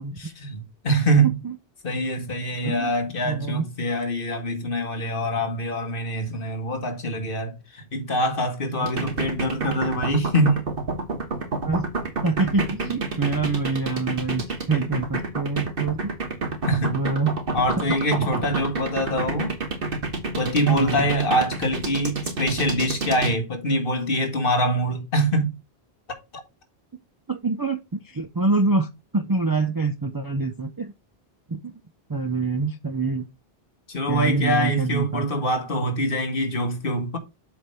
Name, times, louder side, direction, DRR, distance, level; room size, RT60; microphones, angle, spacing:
voice 1, 0.0-1.4 1.8-10.7 16.7-17.0 17.5-19.5 20.4-25.6 33.9-37.2, equal, 60° left, 1.7 m, -24 dB
voice 2, 1.2-1.6 2.6-2.9 3.2-3.7 11.6-11.9 12.2-16.1 16.9-17.4 18.2-18.3 20.7-21.1 27.3-30.9 31.5-31.8 32.1-33.3 34.1-35.5, right 3 dB, 30° right, 0.4 m, -26 dB
sound 1, 8.9-23.3, right 3 dB, 60° right, 1.6 m, -28 dB
7.7 x 3.4 x 5.3 m
omnidirectional pair, 1.0 m